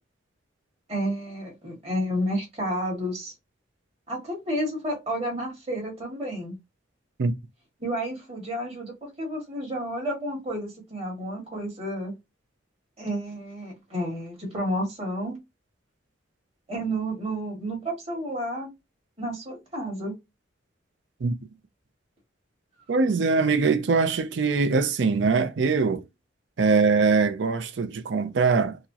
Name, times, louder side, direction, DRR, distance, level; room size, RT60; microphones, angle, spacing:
voice 1, 0.9-3.3 4.1-6.6 7.8-12.2 13.0-15.4 16.7-18.7 19.2-20.2, equal, 35° right, 1.9 m, -31 dB
voice 2, 22.9-26.0 26.6-28.8, right 4 dB, 65° right, 0.5 m, -22 dB
4.7 x 2.1 x 2.8 m
head